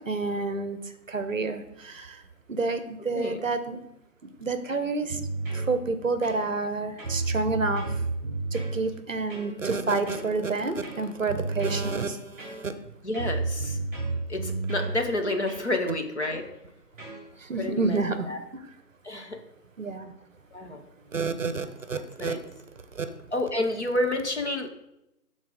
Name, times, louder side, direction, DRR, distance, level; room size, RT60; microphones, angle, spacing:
voice 1, 0.1-0.8 1.1-2.2 2.5-3.8 4.4-5.2 5.5-7.9 8.5-12.7 17.4-18.3 19.8-20.1 21.1-22.4 23.0-23.1, right 3 dB, 55° right, 10 dB, 0.7 m, -29 dB
sound 1, 5.1-5.7 6.2-6.7 7.0-8.8 9.3-9.5 10.1-10.3 10.8-11.9 12.4-12.8 13.1-14.9 15.5-15.7 16.2-16.4 17.0-17.2, right 3 dB, 5° right, 2.8 m, -32 dB
voice 2, 13.0-13.8 14.3-16.4 17.6-18.0 18.3-18.4 19.0-19.4 20.5-20.9 22.2-22.4 23.3-24.7, left 1 dB, 45° left, 4 dB, 0.9 m, -29 dB
11.0 x 4.1 x 3.6 m, 0.87 s
figure-of-eight pair, 170°, 49 cm